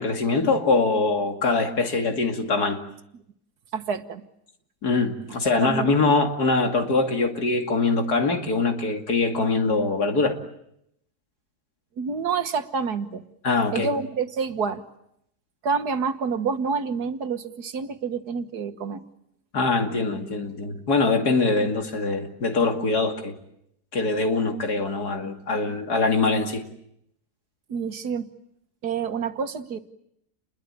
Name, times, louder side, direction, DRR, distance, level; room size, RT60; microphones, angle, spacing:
voice 1, 0.0-2.8 4.8-10.4 13.4-13.9 19.5-23.4 23.9-26.7, left 3 dB, 75° left, 5 dB, 3.0 m, -23 dB
voice 2, 3.7-4.2 5.6-6.1 12.0-13.2 13.7-14.8 15.6-19.0 27.7-28.3 28.8-29.8, right 5 dB, 75° right, 9 dB, 1.9 m, -28 dB
29.5 x 21.5 x 8.9 m, 0.77 s
omnidirectional pair, 1.7 m